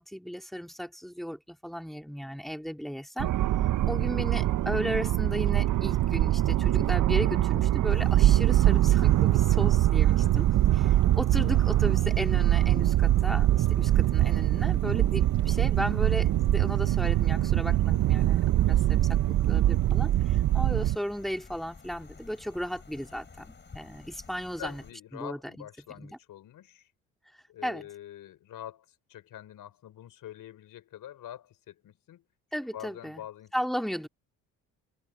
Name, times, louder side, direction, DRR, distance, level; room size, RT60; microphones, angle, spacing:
voice 1, 0.0-3.3 3.9-10.5 10.7-24.8 25.1-25.6 26.0-26.2 27.6-27.8 32.5-33.2 33.5-34.1, equal, ahead, 3.2 m, -35 dB
sound 1, 3.2-21.0, right 13 dB, 60° right, 0.9 m, -23 dB
sound 2, 7.9-24.9, left 4 dB, 30° left, 4.6 m, -51 dB
voice 2, 24.6-26.9 27.5-32.2 32.7-33.5, left 12 dB, 70° left, 4.7 m, -45 dB
supercardioid pair, 70°, 35 cm